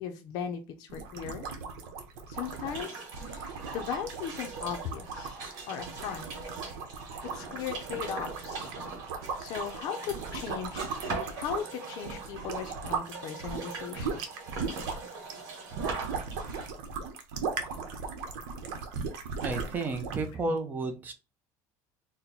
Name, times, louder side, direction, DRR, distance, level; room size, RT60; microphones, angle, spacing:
voice 1, 0.0-1.5 2.3-5.3 5.7-6.4 7.3-8.7 9.4-14.2 20.4-20.6, left 8 dB, 55° left, 5 dB, 0.6 m, -38 dB
sound 1, 0.9-13.1 13.4-20.3, right 5 dB, 80° right, 0.9 m, -38 dB
sound 2, 2.3-16.7, right 4 dB, 50° right, 1.6 m, -41 dB
voice 2, 19.4-21.1, right 3 dB, 20° right, 6 dB, 0.6 m, -32 dB
4.3 x 2.1 x 4.0 m, 0.29 s
cardioid pair, 170°, 8 cm